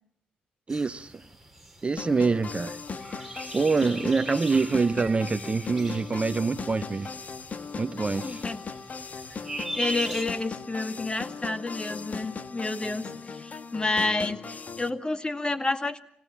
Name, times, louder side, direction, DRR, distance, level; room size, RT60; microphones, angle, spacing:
sound 1, 0.7-10.2, right 1 dB, 5° right, 3.8 m, -41 dB
voice 1, 0.7-1.3 1.8-2.8 3.5-7.1 7.8-8.5, right 4 dB, 30° right, 13 dB, 0.9 m, -25 dB
sound 2, 2.0-14.9, left 5 dB, 45° left, 1.5 m, -38 dB
voice 2, 8.2-8.6 9.7-16.0, left 2 dB, 25° left, 10 dB, 2.2 m, -30 dB
25.5 x 18.0 x 8.7 m, 0.73 s
supercardioid pair, 60°, 4 cm